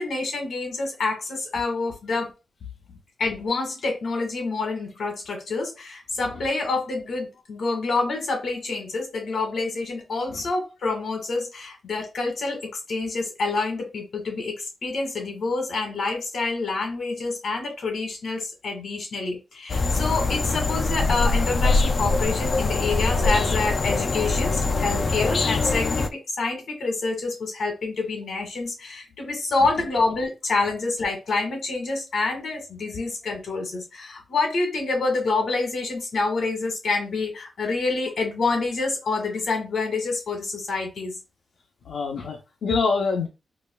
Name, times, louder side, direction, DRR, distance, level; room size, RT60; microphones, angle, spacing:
voice 1, 0.0-2.3 3.2-41.2, left 3 dB, 65° left, 1.6 m, -27 dB
sound 1, 19.7-26.1, left 3 dB, 40° left, 0.3 m, -23 dB
voice 2, 41.9-43.3, left 4 dB, 85° left, 0.6 m, -25 dB
4.9 x 2.2 x 2.3 m
wide cardioid pair, 135°, 0 cm